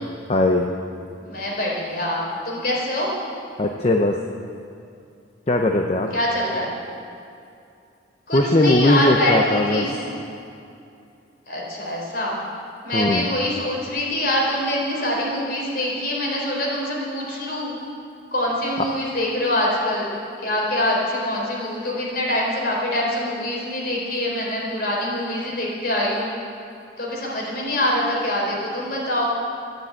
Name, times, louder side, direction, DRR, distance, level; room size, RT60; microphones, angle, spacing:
voice 1, 0.3-0.7 3.6-4.2 5.5-6.1 8.3-9.9 12.9-13.3 18.8-18.9, left 1 dB, 35° left, 3 dB, 0.8 m, -19 dB
voice 2, 1.1-3.1 6.1-6.7 8.3-10.2 11.5-12.4 12.8-17.8 18.3-20.1 20.4-26.3 27.0-29.3, left 1 dB, 55° left, -3 dB, 4.4 m, -24 dB
15.0 x 11.0 x 8.9 m, 2.6 s
head